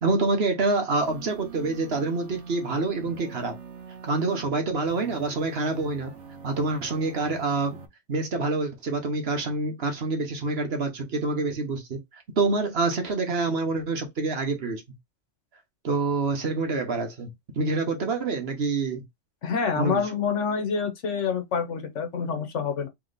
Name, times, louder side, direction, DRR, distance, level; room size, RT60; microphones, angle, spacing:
voice 1, 0.0-3.5 4.0-6.1 6.4-7.8 8.1-14.8 15.8-19.0 19.8-20.0, right 3 dB, 60° right, 1.3 m, -27 dB
sound 1, 1.0-4.5 4.8-7.9, right 5 dB, 80° right, 1.3 m, -44 dB
voice 2, 19.4-22.9, left 6 dB, 90° left, 1.4 m, -27 dB
3.5 x 3.2 x 4.0 m
omnidirectional pair, 1.2 m